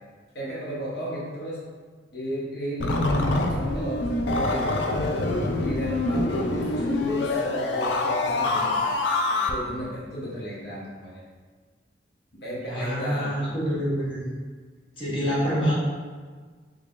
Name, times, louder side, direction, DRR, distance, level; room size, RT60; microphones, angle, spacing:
voice 1, 0.3-1.6 2.1-4.8 5.6-8.8 9.3-11.2 12.3-13.4 15.1-15.4, equal, 65° left, -6 dB, 0.9 m, -34 dB
sound 1, 2.8-9.5, left 2 dB, 90° left, 0.4 m, -25 dB
voice 2, 12.7-14.3 15.0-15.7, equal, 30° left, -7 dB, 1.0 m, -26 dB
3.5 x 3.4 x 2.5 m, 1.5 s
head